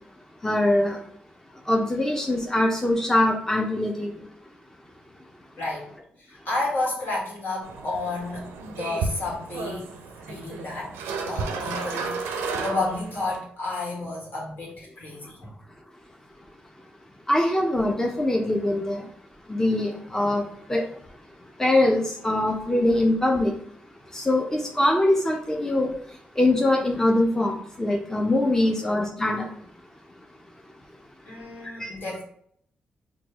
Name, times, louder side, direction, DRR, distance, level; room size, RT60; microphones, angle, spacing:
voice 1, 0.4-1.0 1.7-4.1 17.3-19.1 19.5-20.4 20.7-20.8 21.6-23.5 24.1-25.9 26.4-29.5 31.8-31.9, left 1 dB, 15° left, 0 dB, 0.6 m, -23 dB
voice 2, 5.6-5.9 6.2-8.5 8.8-9.9 10.2-11.0 11.3-15.5 31.2-32.2, left 2 dB, 65° left, -3 dB, 1.4 m, -31 dB
sound 1, 7.6-13.4, right 4 dB, 85° right, 0.4 m, -33 dB
4.3 x 2.3 x 3.0 m, 0.66 s
supercardioid pair, 45°, 4 cm